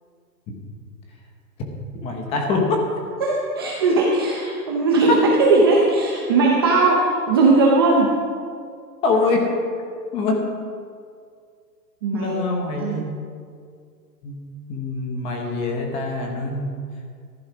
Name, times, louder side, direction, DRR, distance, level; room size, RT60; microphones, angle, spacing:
voice 1, 1.9-2.8 5.1-5.2 9.0-9.5 10.1-10.4 12.1-13.1 14.2-14.4 14.7-16.7, left 3 dB, 10° left, 2 dB, 1.0 m, -23 dB
voice 2, 3.2-8.1 12.0-12.3 12.8-13.0, right 3 dB, 15° right, -3 dB, 0.6 m, -18 dB
14.5 x 11.5 x 6.0 m, 2.2 s
hypercardioid pair, 165°, 49 cm